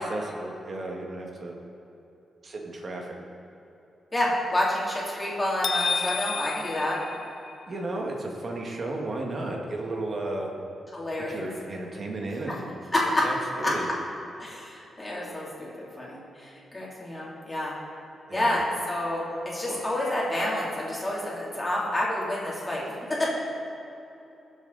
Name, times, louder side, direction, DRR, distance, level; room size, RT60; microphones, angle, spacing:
voice 1, 0.0-1.5 2.4-3.1 7.7-10.5 11.3-12.7 13.0-13.9 18.3-18.6 19.2-19.8, right 2 dB, 40° right, 0 dB, 1.8 m, -34 dB
voice 2, 4.1-7.0 10.9-11.5 12.9-13.2 13.6-13.7 14.4-17.7 18.3-23.3, left 1 dB, 15° left, -6 dB, 3.3 m, -29 dB
sound 1, 5.6-7.8, left 5 dB, 55° left, 0.3 m, -31 dB
21.0 x 7.6 x 4.1 m, 2.9 s
wide cardioid pair, 145°, 0 cm